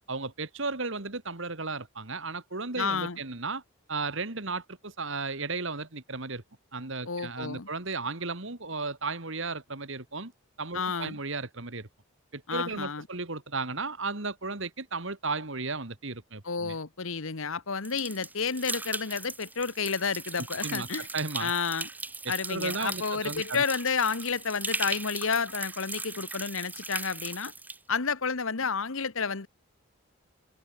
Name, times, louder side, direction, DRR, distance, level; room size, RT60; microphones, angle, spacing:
voice 1, 0.1-3.6 3.9-6.4 6.7-10.3 10.6-11.9 12.3-16.8 20.6-21.5 22.2-23.6, right 3 dB, 55° right, 2.1 m, -34 dB
voice 2, 2.8-3.2 7.1-7.7 10.7-11.2 12.5-13.1 16.4-21.1 21.4-21.9 22.3-27.5 27.9-29.5, left 5 dB, 65° left, 1.2 m, -30 dB
sound 1, 17.8-27.8, right 3 dB, 10° right, 1.5 m, -38 dB
head